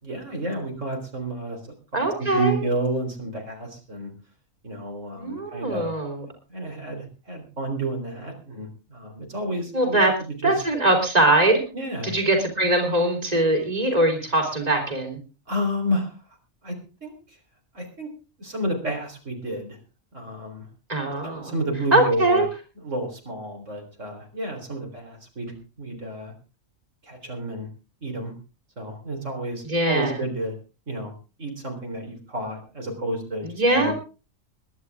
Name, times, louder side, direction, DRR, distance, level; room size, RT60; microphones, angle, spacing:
voice 1, 0.0-1.6 1.9-4.1 4.6-5.9 6.5-10.6 11.7-12.1 15.5-16.1 16.6-16.8 17.0-17.2 17.7-18.1 18.4-19.8 20.1-20.7 21.0-22.4 22.8-26.3 27.0-27.7 28.0-28.3 28.8-30.5 30.9-31.1 31.4-33.9, right 1 dB, 70° right, 2 dB, 4.3 m, -30 dB
voice 2, 1.9-2.5 5.2-6.3 9.7-10.1 10.4-11.6 12.0-15.2 20.9-21.5 21.9-22.5 29.7-30.2 33.6-33.9, right 2 dB, 30° right, 3 dB, 4.0 m, -21 dB
22.0 x 11.0 x 3.7 m, 0.33 s
omnidirectional pair, 1.3 m